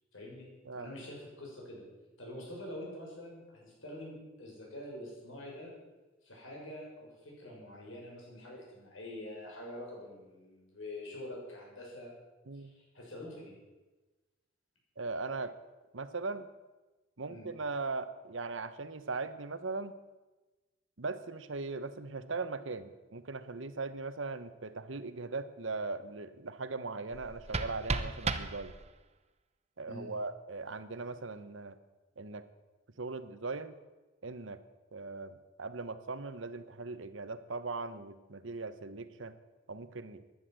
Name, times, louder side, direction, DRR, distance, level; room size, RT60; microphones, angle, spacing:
voice 1, 0.1-1.8 2.2-5.7 6.2-12.1 12.5-13.6 17.3-17.5 29.9-30.1, left 1 dB, 90° left, -2 dB, 6.7 m, -46 dB
voice 2, 15.0-15.6 15.9-16.5 17.2-19.9 21.0-28.7 29.8-31.8 32.2-32.4 33.0-33.8 34.2-34.6 34.9-39.3 39.7-40.2, right 3 dB, 70° right, 12 dB, 1.1 m, -39 dB
sound 1, 27.1-29.1, right 3 dB, 35° right, 0.8 m, -36 dB
15.0 x 11.0 x 7.7 m, 1.2 s
head